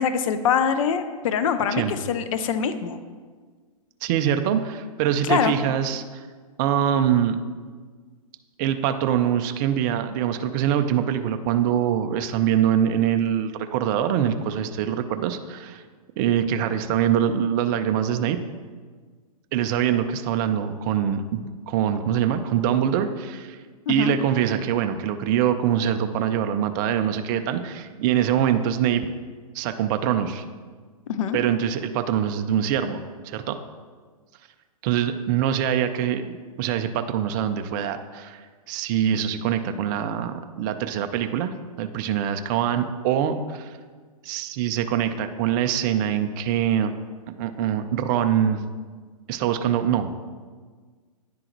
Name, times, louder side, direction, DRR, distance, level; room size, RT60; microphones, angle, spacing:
voice 1, 0.0-3.0 5.2-5.6 23.9-24.2 31.1-31.4, left 7 dB, 60° left, 10 dB, 0.5 m, -24 dB
voice 2, 4.0-6.3 6.6-7.4 8.6-15.8 16.2-18.4 19.5-23.6 23.9-29.1 29.5-30.4 31.3-33.6 34.8-43.8 44.2-46.9 47.4-48.6 49.3-50.2, right 9 dB, 30° right, 7 dB, 0.3 m, -24 dB
9.9 x 3.8 x 3.0 m, 1.5 s
hypercardioid pair, 130°, 19 cm